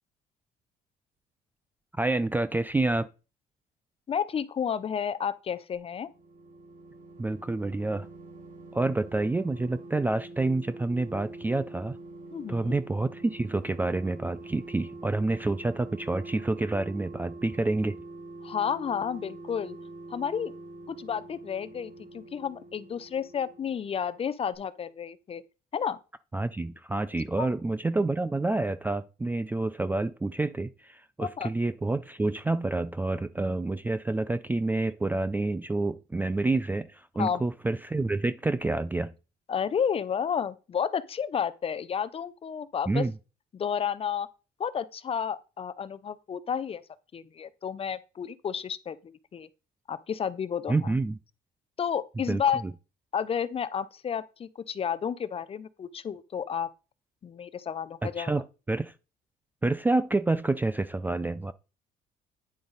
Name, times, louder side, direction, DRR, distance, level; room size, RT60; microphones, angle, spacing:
voice 1, 2.0-3.1 7.2-8.1 8.7-12.0 12.5-18.0 26.3-39.1 42.9-43.1 50.7-51.2 52.3-52.4 58.0-58.9 59.6-61.5, right 2 dB, 10° right, 0.3 m, -28 dB
voice 2, 4.1-6.1 12.3-12.8 18.4-19.8 20.1-20.5 20.9-25.4 25.7-26.0 27.4-27.5 31.2-31.5 37.2-37.4 39.5-43.0 43.5-44.3 44.6-46.8 47.1-49.5 49.9-50.9 51.8-52.6 53.1-56.7 57.2-58.3, left 7 dB, 35° left, 0.6 m, -31 dB
sound 1, 5.7-24.2 24.5-24.6, right 2 dB, 50° right, 2.3 m, -45 dB
9.6 x 4.8 x 4.0 m
cardioid pair, 110°, 17 cm